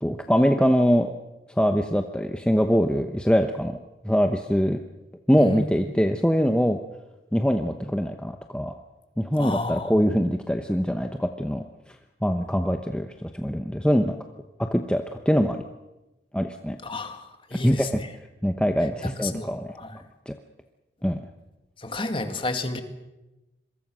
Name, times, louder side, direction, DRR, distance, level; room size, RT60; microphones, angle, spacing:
voice 1, 0.0-1.1 1.6-3.8 4.0-4.8 5.3-6.8 7.3-8.7 9.2-11.6 12.2-14.2 14.6-15.6 16.3-16.8 17.6-18.0 18.4-19.8 20.3-20.4 21.0-21.2, equal, 5° left, 5 dB, 0.9 m, -23 dB
voice 2, 5.4-5.8 9.4-9.9 16.8-18.1 19.0-20.0 21.8-22.8, left 2 dB, 30° left, 7 dB, 2.0 m, -31 dB
26.0 x 23.0 x 6.3 m, 1.0 s
head